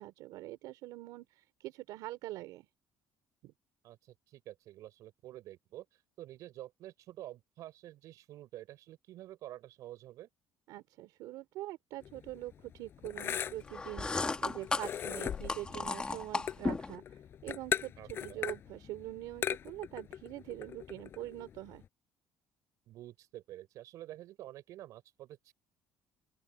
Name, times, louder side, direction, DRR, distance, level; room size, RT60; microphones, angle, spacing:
voice 1, 0.0-2.7 3.4-3.5 10.7-21.8, right 16 dB, 80° right, 3.7 m, -44 dB
voice 2, 3.8-5.9 6.2-10.3 18.0-18.4 22.9-25.5, right 14 dB, 60° right, 6.0 m, -49 dB
sound 1, 12.0-21.8, left 9 dB, 35° left, 6.4 m, -40 dB
sound 2, 13.7-17.0, left 3 dB, 15° left, 1.7 m, -35 dB
open air
cardioid pair, 170°, 6 cm